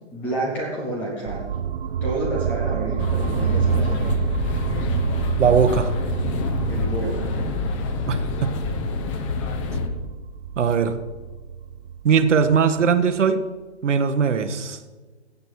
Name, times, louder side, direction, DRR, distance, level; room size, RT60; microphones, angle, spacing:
voice 1, 0.1-1.5 2.0-4.2 6.7-7.2, right 2 dB, 5° left, -1 dB, 0.4 m, -29 dB
sound 1, 1.3-13.2, right 8 dB, 60° right, 0.7 m, -28 dB
sound 2, 3.0-9.9, left 5 dB, 25° left, 0.9 m, -27 dB
voice 2, 5.4-5.9 8.1-8.5 10.6-11.0 12.0-13.4 13.8-14.8, right 6 dB, 85° right, 9 dB, 1.2 m, -20 dB
15.5 x 8.6 x 4.7 m, 1.3 s
hypercardioid pair, 155°, 35 cm